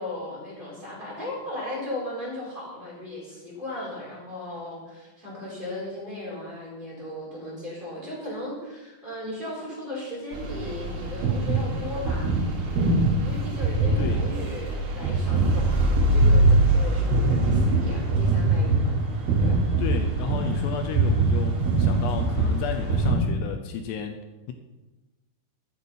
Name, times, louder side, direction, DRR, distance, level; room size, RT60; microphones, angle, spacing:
voice 1, 0.0-12.3 13.2-18.9 19.4-19.8, left 1 dB, 10° right, -6 dB, 4.5 m, -36 dB
sound 1, 10.3-23.2, right 2 dB, 60° right, 3.9 m, -23 dB
voice 2, 19.8-24.5, left 7 dB, 80° left, 5 dB, 2.5 m, -33 dB
13.5 x 8.7 x 5.5 m, 1.1 s
omnidirectional pair, 5.7 m